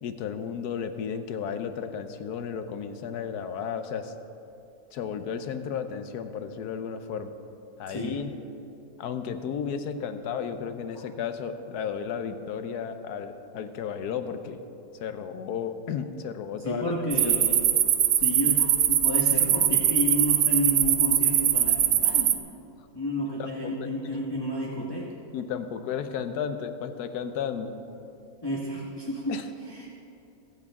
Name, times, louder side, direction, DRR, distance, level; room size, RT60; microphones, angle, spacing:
voice 1, 0.0-4.1 4.9-7.3 7.8-8.3 9.0-14.6 15.0-16.9 17.2-17.4 23.4-23.9 25.3-27.7 29.3-29.4, left 7 dB, 90° left, 9 dB, 1.3 m, -33 dB
voice 2, 16.6-17.7 18.2-22.4 22.9-25.1 28.4-29.9, left 1 dB, 15° left, -4 dB, 1.2 m, -31 dB
sound 1, 17.1-22.4, right 10 dB, 65° right, 1.0 m, -22 dB
23.5 x 8.0 x 3.6 m, 2.8 s
omnidirectional pair, 1.6 m